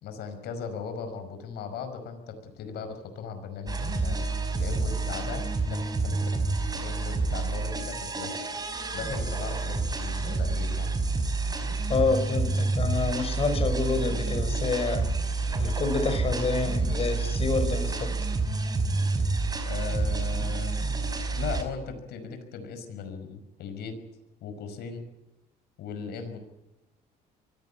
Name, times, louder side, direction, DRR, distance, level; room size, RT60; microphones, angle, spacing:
voice 1, 0.0-4.2 4.5-6.4 6.7-8.3 8.9-10.9 19.6-20.7 21.3-23.9 24.4-25.0 25.8-26.4, left 6 dB, 75° left, 7 dB, 5.5 m, -37 dB
sound 1, 3.7-21.6, right 3 dB, 25° right, 5.3 m, -28 dB
voice 2, 11.9-15.1 15.6-18.1, left 4 dB, 35° left, 10 dB, 5.8 m, -28 dB
24.5 x 17.5 x 8.7 m, 0.98 s
cardioid pair, 110°, 17 cm